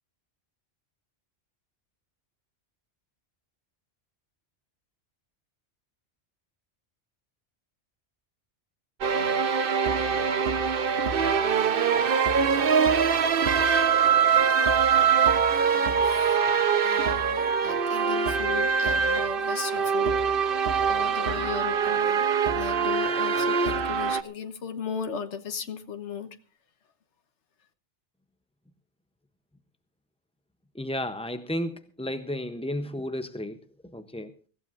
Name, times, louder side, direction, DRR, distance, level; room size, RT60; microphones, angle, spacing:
sound 1, 9.0-24.2, right 6 dB, 55° right, 1.0 m, -23 dB
voice 1, 14.6-16.4 16.8-22.2 22.5-26.3, left 7 dB, 80° left, 1.5 m, -37 dB
voice 2, 30.7-33.6 33.9-34.3, left 1 dB, 5° left, 0.5 m, -33 dB
24.5 x 15.5 x 2.5 m
omnidirectional pair, 1.2 m